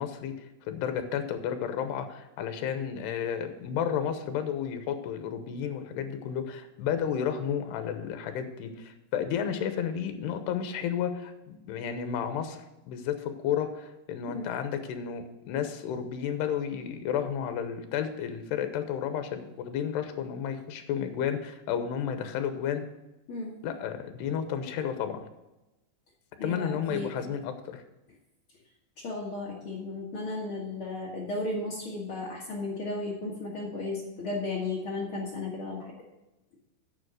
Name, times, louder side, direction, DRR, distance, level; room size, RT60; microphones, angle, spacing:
voice 1, 0.0-12.6 12.9-22.9 23.6-25.3 26.4-27.8, left 8 dB, 80° left, 8 dB, 3.0 m, -32 dB
voice 2, 23.3-23.6 26.4-27.1 29.0-35.9, left 2 dB, 55° left, -3 dB, 1.4 m, -34 dB
8.8 x 7.3 x 6.3 m, 0.98 s
omnidirectional pair, 4.9 m